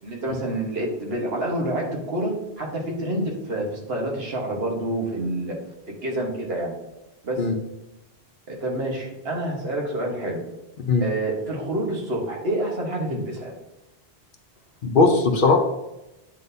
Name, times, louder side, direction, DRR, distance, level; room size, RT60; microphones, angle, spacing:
voice 1, 0.0-5.6 5.9-6.7 7.2-7.5 8.5-10.4 11.0-13.5, right 1 dB, 70° right, -1 dB, 1.5 m, -28 dB
voice 2, 14.8-15.6, left 3 dB, 55° left, 4 dB, 0.8 m, -18 dB
9.1 x 3.9 x 2.7 m, 0.94 s
omnidirectional pair, 1.1 m